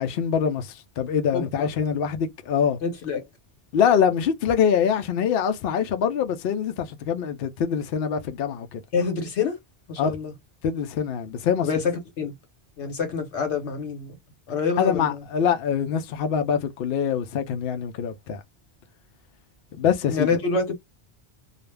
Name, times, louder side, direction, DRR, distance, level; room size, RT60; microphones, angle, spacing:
voice 1, 0.0-2.8 3.7-8.8 10.0-10.1 10.6-11.7 14.8-18.4 19.8-20.3, left 7 dB, 65° left, 0.7 m, -24 dB
voice 2, 1.3-1.7 2.8-3.2 8.9-9.6 9.9-10.3 11.6-12.4 12.8-14.1 14.5-15.2 20.1-20.7, left 5 dB, 90° left, 1.2 m, -26 dB
2.4 x 2.1 x 3.2 m
omnidirectional pair, 1.1 m